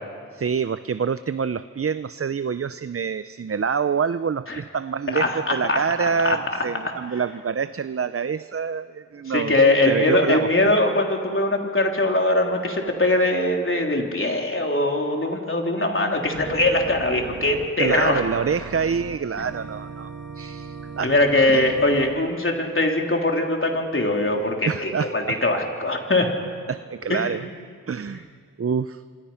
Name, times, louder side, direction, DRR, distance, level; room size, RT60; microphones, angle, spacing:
voice 1, 0.3-9.6 9.8-10.5 15.6-15.7 17.8-21.1 21.5-21.7 24.7-25.4 26.7-27.5 27.9-28.3 28.6-29.0, right 6 dB, 45° right, 13 dB, 0.6 m, -26 dB
voice 2, 5.1-5.8 6.2-6.4 9.3-18.2 21.0-26.3 27.1-27.4 28.1-28.2, left 2 dB, 40° left, 1 dB, 3.8 m, -21 dB
Organ, 16.3-22.2, right 4 dB, 70° right, 2.2 m, -38 dB
29.0 x 26.0 x 5.8 m, 2.1 s
cardioid pair, 50°, 32 cm